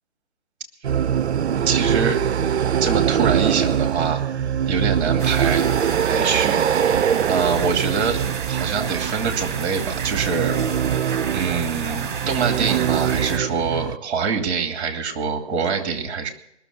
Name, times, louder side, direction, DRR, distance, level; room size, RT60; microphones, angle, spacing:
sound 1, 0.8-14.0, right 8 dB, 70° right, 0.5 m, -23 dB
voice 1, 1.7-2.2 2.5-4.2 4.7-5.7 6.0-8.2 8.5-10.6 11.3-16.3, right 5 dB, 25° right, 4 dB, 2.6 m, -25 dB
sound 2, 5.2-13.4, right 6 dB, 45° right, 1.3 m, -31 dB
20.5 x 7.1 x 8.2 m, 0.78 s
figure-of-eight pair, 140°, 35 cm